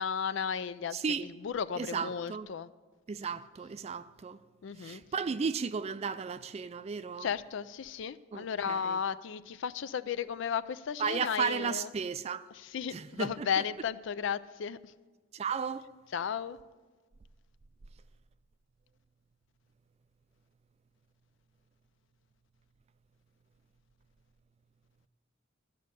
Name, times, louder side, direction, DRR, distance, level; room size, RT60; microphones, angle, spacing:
voice 1, 0.0-1.0 1.4-2.7 4.6-5.0 7.2-11.9 12.7-14.9 16.1-16.6, left 7 dB, 65° left, 0.4 m, -34 dB
voice 2, 0.9-1.3 1.8-2.5 3.1-4.4 4.7-7.3 8.3-9.0 11.0-12.5 12.9-13.7 15.3-15.9, right 6 dB, 30° right, 0.3 m, -34 dB
13.0 x 6.4 x 8.2 m
head